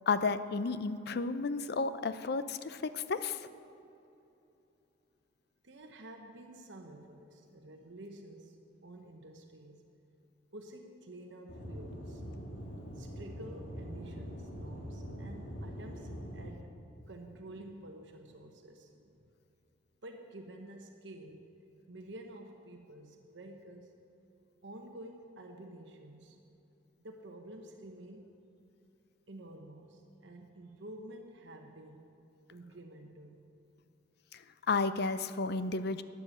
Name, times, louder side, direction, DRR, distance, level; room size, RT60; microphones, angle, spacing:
voice 1, 0.1-3.5 34.3-34.4 34.7-36.0, left 4 dB, 55° left, 12 dB, 0.5 m, -32 dB
voice 2, 5.6-8.6 8.8-9.8 10.5-12.2 13.0-16.8 17.1-19.2 20.0-21.5 21.9-24.0 24.6-26.4 27.0-28.3 29.3-32.1 32.5-33.4, right 1 dB, 70° right, 3 dB, 1.0 m, -50 dB
Aircraft / Engine, 11.5-16.5, equal, 80° left, 2.4 m, -43 dB
12.5 x 9.4 x 7.7 m, 2.8 s
head